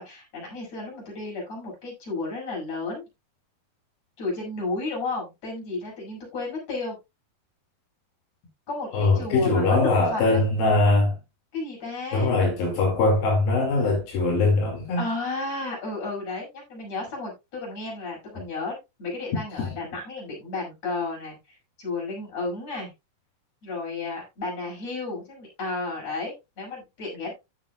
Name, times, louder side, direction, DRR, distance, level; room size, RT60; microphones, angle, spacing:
voice 1, 0.0-3.0 4.2-7.0 8.7-10.4 11.5-12.3 15.0-22.9 23.6-27.3, left 3 dB, 45° left, 7.5 m, -33 dB
voice 2, 8.9-11.2 12.1-15.1 19.6-19.7, left 2 dB, 80° left, 4.2 m, -22 dB
14.5 x 6.7 x 2.4 m
omnidirectional pair, 4.1 m